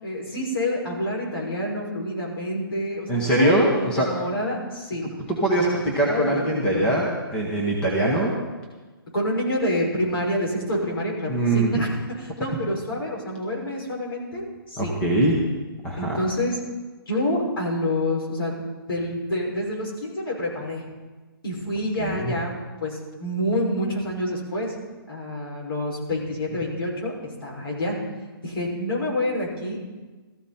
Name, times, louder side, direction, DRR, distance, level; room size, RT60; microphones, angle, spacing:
voice 1, 0.0-5.0 5.6-6.9 9.1-11.9 12.2-14.9 16.0-16.6 17.1-18.5 18.9-20.8 21.4-22.5 22.8-24.7 25.1-28.0 28.4-29.8, left 1 dB, 65° left, -3 dB, 5.9 m, -28 dB
voice 2, 3.1-4.1 5.4-8.4 11.3-11.8 14.8-15.4 15.8-16.2 22.0-22.3, right 1 dB, 5° left, -3 dB, 1.1 m, -22 dB
17.0 x 14.0 x 4.3 m, 1.3 s
hypercardioid pair, 175°, 13 cm